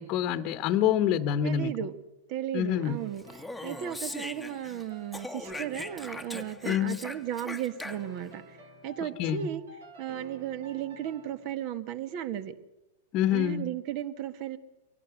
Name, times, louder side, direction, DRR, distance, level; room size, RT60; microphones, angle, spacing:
voice 1, 0.0-1.7 2.5-3.0 6.6-7.0 9.0-9.5 13.1-13.7, left 10 dB, 40° left, 11 dB, 1.2 m, -27 dB
voice 2, 1.4-1.9 2.3-3.2 3.6-8.6 8.8-9.6 10.0-12.5 13.3-14.6, right 10 dB, 45° right, 12 dB, 1.8 m, -35 dB
sound 1, 2.7-11.6, right 1 dB, 70° right, 5.0 m, -50 dB
Speech, 3.2-4.8 5.1-8.3, left 2 dB, ahead, 1.4 m, -40 dB
24.5 x 17.5 x 7.9 m, 0.97 s
figure-of-eight pair, 100°, 0 cm